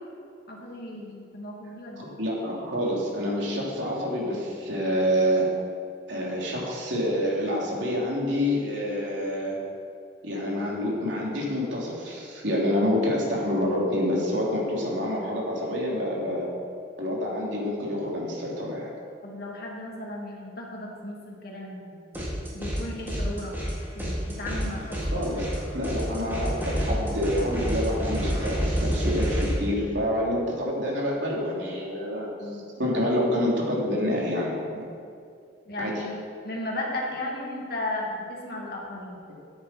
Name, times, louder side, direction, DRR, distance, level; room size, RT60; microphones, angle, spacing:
voice 1, 0.5-2.2 19.2-22.3 22.5-23.5 23.9-25.5 32.4-32.6 35.7-39.2, left 1 dB, 60° left, -2 dB, 2.5 m, -35 dB
voice 2, 2.0-5.5 6.1-9.5 10.2-16.5 17.0-18.9 25.1-25.5 25.7-32.5 32.8-34.9 35.8-36.0, equal, 90° right, -4 dB, 3.3 m, -27 dB
sound 1, 22.1-22.8 23.1-29.5, equal, 10° right, 3.4 m, -29 dB
14.0 x 9.5 x 4.5 m, 2.3 s
head